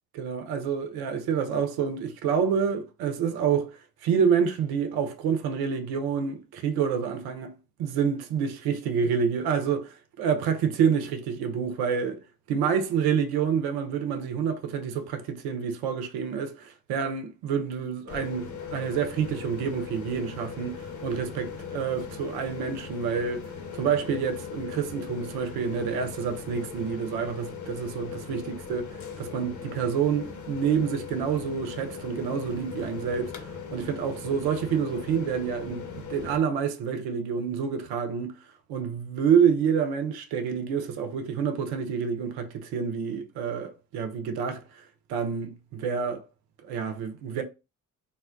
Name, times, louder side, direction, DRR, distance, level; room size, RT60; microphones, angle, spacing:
voice 1, 0.1-3.7 4.0-12.2 12.5-23.4 23.7-28.4 28.7-28.8 29.2-38.3 38.7-44.8 45.1-46.3 46.6-47.4, right 7 dB, 60° right, 0.8 m, -28 dB
sound 1, 18.1-36.4, left 6 dB, 45° left, 1.0 m, -39 dB
4.0 x 2.2 x 2.5 m
hypercardioid pair, 50°, 43 cm